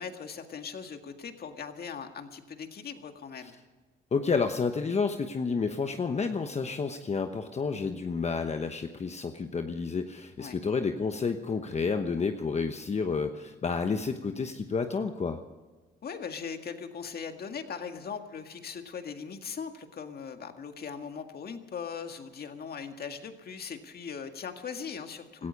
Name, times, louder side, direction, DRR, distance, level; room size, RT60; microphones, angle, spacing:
voice 1, 0.0-3.6 10.4-10.6 16.0-25.5, left 6 dB, 50° left, 6 dB, 1.9 m, -40 dB
voice 2, 4.1-15.4 25.4-25.5, left 5 dB, 35° left, 6 dB, 1.0 m, -30 dB
17.5 x 14.0 x 5.3 m, 1.3 s
cardioid pair, 90°, 20 cm